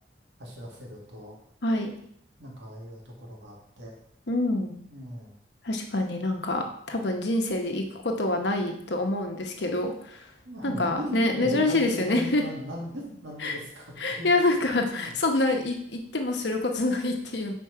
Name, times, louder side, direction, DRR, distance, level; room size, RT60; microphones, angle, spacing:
voice 1, 0.4-1.4 2.4-4.0 4.9-5.3 10.4-14.5 14.9-15.1, equal, 75° right, -2 dB, 1.9 m, -38 dB
voice 2, 1.6-1.9 4.3-4.7 5.6-10.3 10.6-12.4 13.4-13.6 14.0-17.5, left 2 dB, 70° left, 3 dB, 1.0 m, -26 dB
5.9 x 4.5 x 4.7 m, 0.69 s
head